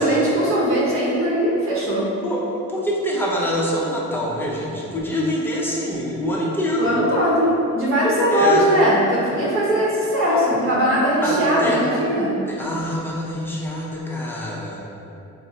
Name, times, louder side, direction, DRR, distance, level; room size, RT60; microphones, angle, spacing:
voice 1, 0.0-2.1 6.8-12.4, equal, 45° right, -7 dB, 0.9 m, -19 dB
voice 2, 2.2-6.9 8.3-8.7 10.3-10.4 11.2-11.8 12.5-14.8, equal, 5° left, -5 dB, 0.6 m, -25 dB
3.7 x 2.0 x 2.7 m, 2.7 s
cardioid pair, 90°, 30 cm